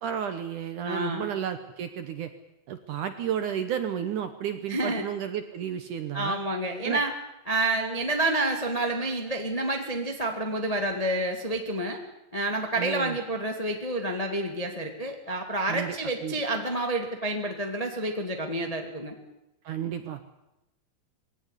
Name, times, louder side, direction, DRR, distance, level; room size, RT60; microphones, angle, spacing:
voice 1, 0.0-2.3 2.7-6.4 6.8-7.0 12.8-13.2 15.7-16.0 16.2-16.4 19.6-20.2, right 9 dB, 70° right, 9 dB, 2.0 m, -32 dB
voice 2, 0.8-1.3 4.7-5.0 6.1-7.1 7.5-12.0 12.3-19.1, right 1 dB, 30° left, 3 dB, 0.6 m, -29 dB
21.5 x 17.5 x 9.9 m, 0.92 s
omnidirectional pair, 4.8 m